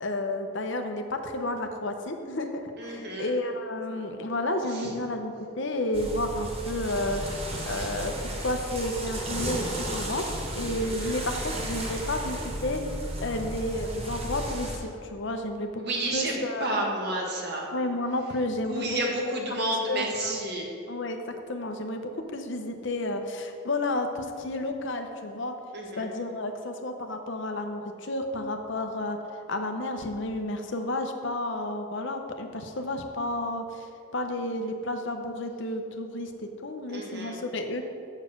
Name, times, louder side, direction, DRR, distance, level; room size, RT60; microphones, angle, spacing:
voice 1, 0.0-13.0 13.2-15.7 16.1-16.7 17.7-18.9 19.9-20.4 20.9-21.2 21.5-25.5 26.0-29.2 29.5-37.8, left 1 dB, 55° left, 5 dB, 0.8 m, -31 dB
voice 2, 2.8-3.3 4.7-4.9 10.8-11.1 15.8-17.7 18.6-20.7 25.7-26.1 36.9-37.4, right 1 dB, 50° right, -1 dB, 1.5 m, -31 dB
sound 1, 5.9-14.8, right 1 dB, 25° right, 1.1 m, -34 dB
7.1 x 6.5 x 6.5 m, 2.6 s
head